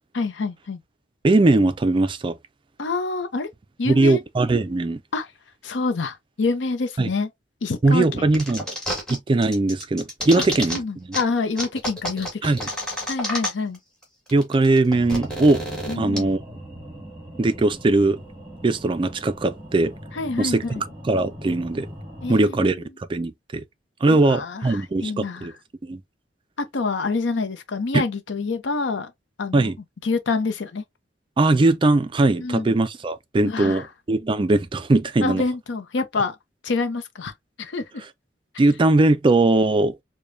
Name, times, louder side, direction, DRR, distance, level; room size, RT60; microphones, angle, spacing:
voice 1, 0.1-0.8 2.8-3.5 3.8-4.2 5.1-5.3 5.6-7.3 7.6-8.3 10.4-10.5 10.7-12.7 13.1-13.8 15.9-16.3 20.1-20.8 22.2-22.8 24.1-25.5 26.6-29.1 29.4-29.7 30.0-30.8 32.4-32.8 33.4-33.9 35.2-36.4 36.6-37.3 37.6-38.1, left 3 dB, 80° left, 0.6 m, -27 dB
voice 2, 1.2-2.3 3.9-5.0 7.0-7.1 7.8-8.7 9.1-11.1 12.4-12.6 14.3-15.6 16.0-16.4 17.4-18.2 18.6-19.9 20.4-21.9 22.3-22.8 23.1-23.6 24.0-25.5 25.8-26.0 27.9-28.0 29.5-29.8 31.4-35.4 38.6-39.9, right 2 dB, 25° right, 0.3 m, -20 dB
sound 1, 8.3-9.2 9.4-10.8 11.1-11.2 11.6-13.8 14.0-14.1 14.3-16.2, equal, 5° left, 1.7 m, -29 dB
sound 2, 14.9-22.4, equal, 10° right, 1.9 m, -40 dB
4.9 x 2.2 x 2.6 m
head